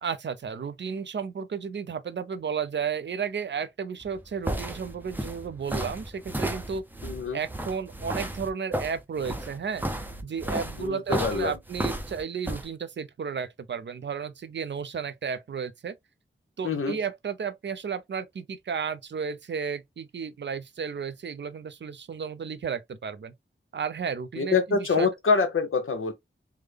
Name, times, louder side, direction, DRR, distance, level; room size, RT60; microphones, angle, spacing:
voice 1, 0.0-6.8 7.3-9.8 10.2-16.0 16.6-23.3 23.7-25.1, right 6 dB, 60° right, 0.5 m, -33 dB
sound 1, 4.0-12.7, right 1 dB, 10° right, 0.6 m, -33 dB
voice 2, 7.0-7.4 10.8-11.5 16.6-17.0 24.4-26.1, left 5 dB, 80° left, 0.9 m, -25 dB
3.5 x 2.1 x 3.2 m
wide cardioid pair, 85°, 21 cm